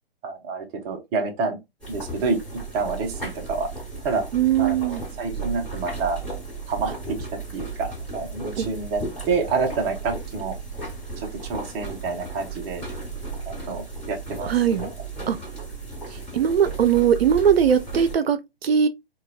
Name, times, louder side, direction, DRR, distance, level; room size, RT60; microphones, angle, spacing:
voice 1, 0.2-1.6 1.9-2.4 2.7-3.7 4.0-4.2 4.6-6.2 6.7-7.2 7.5-9.0 9.3-10.6 11.4-12.8 13.5-14.5 16.1-16.2, right 4 dB, 20° right, 0.7 m, -28 dB
sound 1, 1.8-18.1, right 3 dB, 5° left, 1.5 m, -35 dB
voice 2, 4.3-5.0 8.6-8.7 14.4-14.9 15.3-15.4 16.3-18.9, right 8 dB, 75° right, 0.6 m, -20 dB
3.9 x 2.3 x 2.3 m
hypercardioid pair, 135°, 31 cm